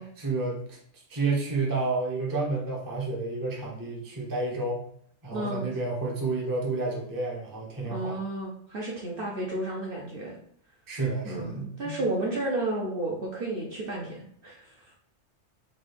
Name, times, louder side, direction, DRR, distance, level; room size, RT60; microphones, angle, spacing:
voice 1, 0.0-4.8 5.2-8.2 10.9-12.0, right 3 dB, 20° right, -2 dB, 0.6 m, -30 dB
voice 2, 5.3-5.7 7.8-10.4 11.2-14.9, right 2 dB, 55° right, -2 dB, 0.8 m, -32 dB
3.9 x 2.3 x 3.3 m, 0.64 s
omnidirectional pair, 1.3 m